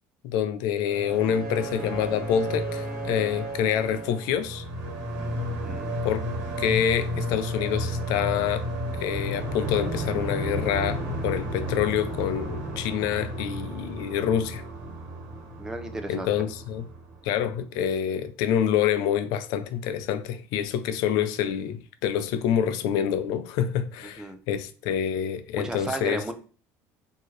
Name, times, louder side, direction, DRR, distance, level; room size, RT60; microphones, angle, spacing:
voice 1, 0.2-4.6 6.0-6.2 6.6-8.7 9.0-14.6 16.1-16.9 17.2-26.2, left 9 dB, 75° left, 0.5 m, -27 dB
sound 1, 0.8-17.6, equal, 75° right, 1.3 m, -32 dB
voice 2, 5.5-5.9 15.6-16.3 24.0-24.4 25.6-26.3, right 2 dB, 10° right, 0.5 m, -34 dB
4.4 x 2.9 x 3.1 m
cardioid pair, 150°, 7 cm